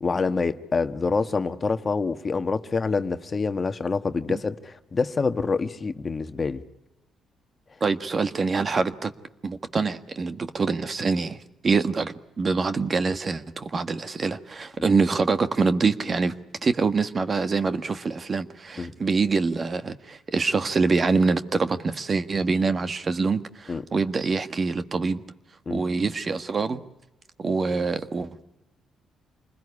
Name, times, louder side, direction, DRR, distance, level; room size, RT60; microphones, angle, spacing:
voice 1, 0.0-6.6 18.8-18.9 23.7-23.8 25.7-25.8, left 4 dB, 35° left, 1.3 m, -26 dB
voice 2, 7.8-9.1 9.4-16.3 16.6-25.2 25.7-26.8 27.4-28.4, right 4 dB, 35° right, 1.5 m, -25 dB
28.0 x 20.5 x 9.8 m
cardioid pair, 90°, 0 cm